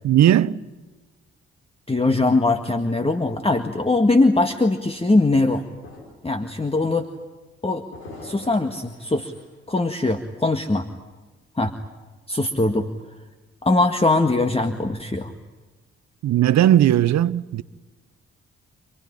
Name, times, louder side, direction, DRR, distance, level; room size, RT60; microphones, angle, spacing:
voice 1, 0.0-0.6 16.2-17.6, right 12 dB, 60° right, 0.9 m, -17 dB
voice 2, 1.9-5.6 6.2-7.1 7.6-7.8 8.2-9.3 9.7-10.9 11.6-11.7 12.3-12.9 13.6-15.3, left 2 dB, 20° left, 1.8 m, -21 dB
sound 1, 5.0-5.1 5.6-6.3 6.7-6.9 7.9-9.5, left 2 dB, 85° left, 5.0 m, -44 dB
27.5 x 18.5 x 10.0 m
hypercardioid pair, 40°, 32 cm